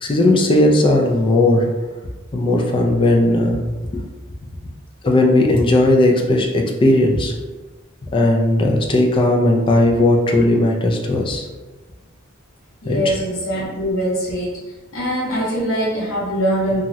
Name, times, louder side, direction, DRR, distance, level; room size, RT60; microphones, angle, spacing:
voice 1, 0.0-1.7 2.3-3.6 3.9-4.0 5.0-7.3 8.1-11.4 12.9-13.2, left 1 dB, 25° left, 1 dB, 0.4 m, -16 dB
voice 2, 12.8-14.6 14.9-16.8, equal, 80° left, -6 dB, 0.9 m, -22 dB
3.0 x 2.4 x 2.7 m, 1.2 s
head